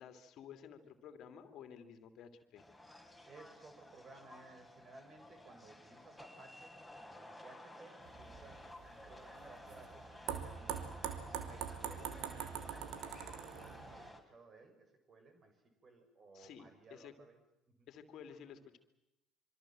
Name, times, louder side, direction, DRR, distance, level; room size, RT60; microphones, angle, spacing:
voice 1, 0.0-2.7 16.3-16.6 16.9-17.1 17.9-18.8, left 8 dB, 50° left, 8 dB, 2.8 m, -53 dB
sound 1, 2.6-14.2, left 1 dB, ahead, 5.3 m, -55 dB
voice 2, 3.3-6.8 7.2-11.1 11.4-12.1 12.7-15.6 15.8-17.4 17.8-17.9, right 3 dB, 40° right, 6 dB, 7.1 m, -59 dB
sound 2, 8.1-14.1, right 8 dB, 60° right, 2.9 m, -44 dB
26.0 x 25.0 x 7.8 m, 0.92 s
figure-of-eight pair, 55°, 0 cm